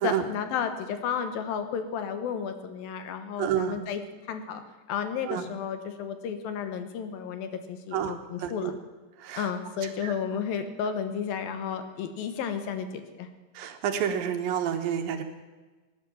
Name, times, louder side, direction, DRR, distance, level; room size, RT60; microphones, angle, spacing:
voice 1, 0.0-4.0 4.3-4.6 4.9-8.7 9.4-13.3, left 7 dB, 75° left, 8 dB, 2.9 m, -32 dB
voice 2, 3.4-3.8 5.2-5.4 7.9-8.7 9.2-9.5 9.8-10.1 13.5-15.2, right 9 dB, 75° right, 6 dB, 2.8 m, -29 dB
18.0 x 10.5 x 7.3 m, 1.3 s
omnidirectional pair, 4.3 m